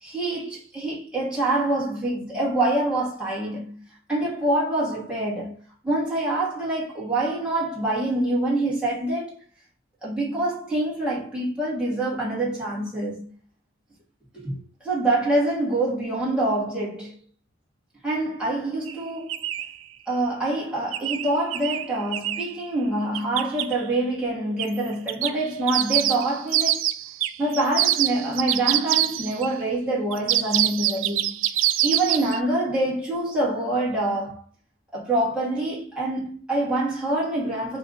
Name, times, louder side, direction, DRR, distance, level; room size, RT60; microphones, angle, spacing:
voice 1, 0.0-3.8 4.1-5.6 5.8-9.3 10.0-13.3 14.3-17.1 18.0-19.4 20.1-26.8 27.4-31.4 31.8-34.4 34.9-37.8, right 2 dB, 5° right, 1.8 m, -25 dB
sound 1, 18.9-19.0 19.3-19.7 20.9-22.5 23.1-23.7 24.6-24.8 25.1-29.5 30.1-32.4, right 13 dB, 85° right, 0.3 m, -25 dB
5.9 x 2.5 x 2.5 m
head